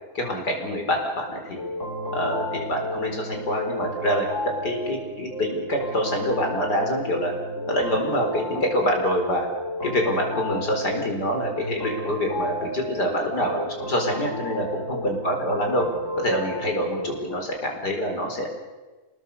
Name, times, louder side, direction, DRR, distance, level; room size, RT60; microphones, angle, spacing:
voice 1, 0.2-1.6 2.1-4.3 4.6-7.3 7.7-9.5 9.8-15.9 16.2-18.5, equal, 75° left, 2 dB, 5.2 m, -26 dB
sound 1, 1.6-17.4, equal, 45° left, 3.2 m, -33 dB
26.0 x 20.5 x 7.1 m, 1.2 s
omnidirectional pair, 1.8 m